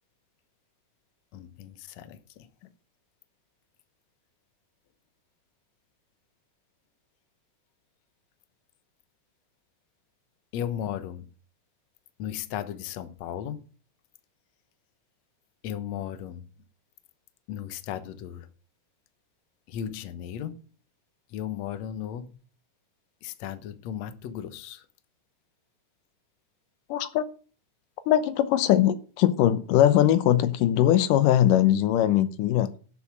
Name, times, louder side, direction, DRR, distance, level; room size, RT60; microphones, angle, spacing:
voice 1, 1.3-2.4 10.5-11.2 12.2-13.6 15.6-16.4 17.5-18.5 19.7-20.6 21.3-22.2 23.2-24.8, left 10 dB, 65° left, 2.1 m, -35 dB
voice 2, 26.9-27.2 28.1-32.7, left 12 dB, 90° left, 2.5 m, -21 dB
12.0 x 7.1 x 6.2 m
omnidirectional pair, 3.7 m